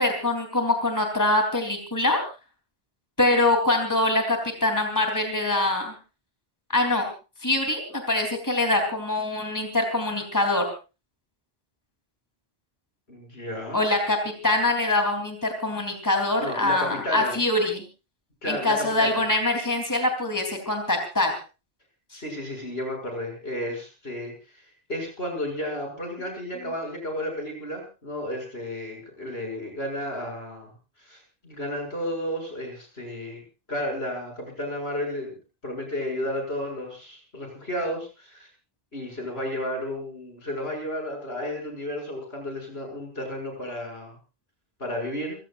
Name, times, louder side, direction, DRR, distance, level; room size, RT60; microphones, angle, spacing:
voice 1, 0.0-2.2 3.2-5.9 6.7-7.1 7.4-10.7 13.7-14.2 14.4-17.8 18.4-21.3 22.1-22.2, left 2 dB, 15° left, 4 dB, 3.5 m, -24 dB
voice 2, 13.1-13.8 16.4-17.4 18.4-19.2 22.1-30.7 31.0-33.4 33.7-35.3 35.6-38.5 38.9-44.2 44.8-45.4, left 1 dB, 75° left, 1 dB, 7.5 m, -32 dB
28.5 x 16.5 x 2.6 m, 0.32 s
omnidirectional pair, 1.1 m